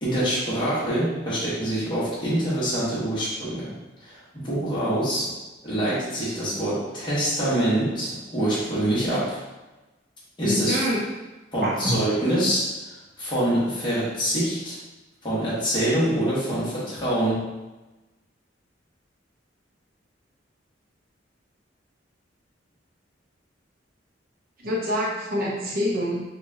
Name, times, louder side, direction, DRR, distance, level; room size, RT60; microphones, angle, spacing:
voice 1, 0.0-3.7 4.0-5.3 5.6-9.4 10.4-10.8 11.5-12.7 13.2-14.8 15.2-17.4, right 1 dB, 25° left, -9 dB, 1.3 m, -25 dB
voice 2, 10.4-11.0 11.6-12.0 24.6-26.2, equal, 55° right, -5 dB, 0.8 m, -26 dB
4.3 x 2.5 x 2.8 m, 1.1 s
head